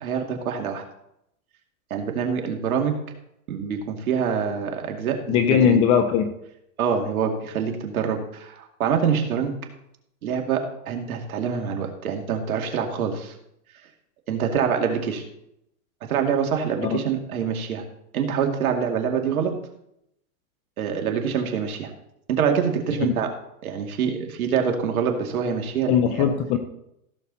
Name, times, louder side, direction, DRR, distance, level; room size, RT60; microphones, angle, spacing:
voice 1, 0.0-0.8 1.9-3.0 3.5-5.8 6.8-9.6 10.2-13.3 14.3-15.2 16.1-17.9 18.1-19.6 20.8-21.9 22.3-23.3 23.6-26.3, right 7 dB, 80° right, 3 dB, 2.4 m, -25 dB
voice 2, 5.3-6.3 16.8-17.0 23.0-23.1 25.9-26.6, left 8 dB, 15° left, 8 dB, 0.3 m, -20 dB
15.5 x 7.3 x 4.1 m, 0.78 s
hypercardioid pair, 135°, 42 cm